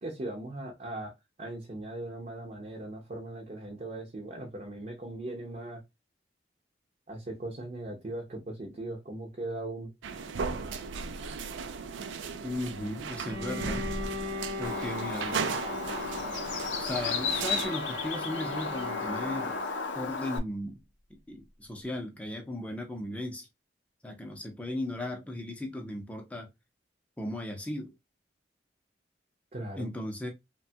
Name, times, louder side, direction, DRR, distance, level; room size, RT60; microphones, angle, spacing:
voice 1, 0.0-1.1 1.4-5.8 7.1-9.9 29.5-29.9, right 2 dB, 40° right, 0.6 m, -39 dB
sound 1, 10.0-17.7, right 5 dB, 85° right, 0.4 m, -36 dB
voice 2, 12.4-13.9 14.6-15.5 16.8-19.6 19.9-20.8 21.1-23.5 24.0-26.5 27.2-27.9 29.8-30.3, left 1 dB, 5° left, 0.5 m, -36 dB
Bowed string instrument, 13.2-20.0, left 2 dB, 65° right, 0.9 m, -40 dB
Bird, 14.6-20.4, left 4 dB, 85° left, 0.5 m, -34 dB
3.1 x 2.2 x 2.7 m
head